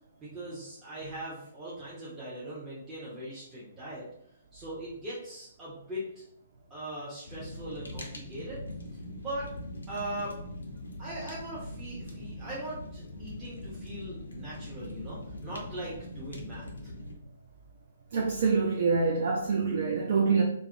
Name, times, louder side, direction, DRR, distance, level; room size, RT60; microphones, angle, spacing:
voice 1, 0.2-4.0 4.5-6.2 6.7-8.6 8.9-9.5 9.9-10.4 11.0-16.9, right 1 dB, 15° right, -9 dB, 0.6 m, -40 dB
Fire, 7.3-17.1, left 1 dB, 70° left, 0.4 m, -42 dB
voice 2, 18.1-20.4, right 4 dB, 50° right, 0 dB, 0.3 m, -25 dB
2.4 x 2.0 x 2.6 m, 0.70 s
figure-of-eight pair, 125°, 0 cm